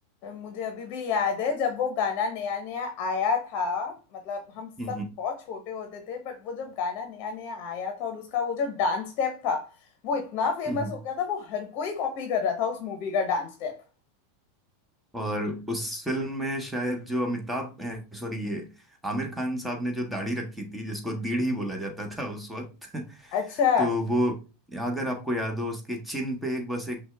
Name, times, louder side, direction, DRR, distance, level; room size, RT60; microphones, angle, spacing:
voice 1, 0.2-9.7 10.0-13.8 23.3-23.9, left 6 dB, 45° left, 1.0 m, -29 dB
voice 2, 4.8-5.1 10.7-10.9 15.1-18.7 19.0-23.4 23.8-24.4 24.7-27.0, equal, 5° right, 1.3 m, -30 dB
6.1 x 2.4 x 3.3 m
hypercardioid pair, 90°, 0 cm